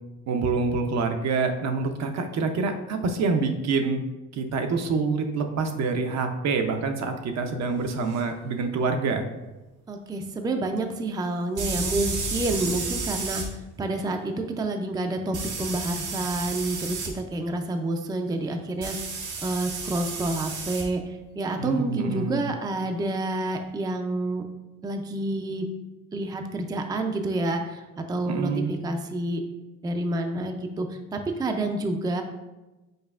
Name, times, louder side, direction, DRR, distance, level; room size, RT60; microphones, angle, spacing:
voice 1, 0.3-4.0 4.3-9.3 21.6-22.5 28.3-28.7, right 4 dB, 60° right, 5 dB, 0.6 m, -26 dB
sound 1, 8.1-8.2 11.6-13.5 15.3-17.1 18.8-20.9, right 4 dB, 80° right, 1.0 m, -32 dB
voice 2, 9.9-13.4 13.8-19.0 19.4-24.4 24.8-25.7 26.1-29.4 29.8-32.2, right 2 dB, 15° right, 5 dB, 0.4 m, -29 dB
5.4 x 4.1 x 2.4 m, 1.1 s
cardioid pair, 90°, 30 cm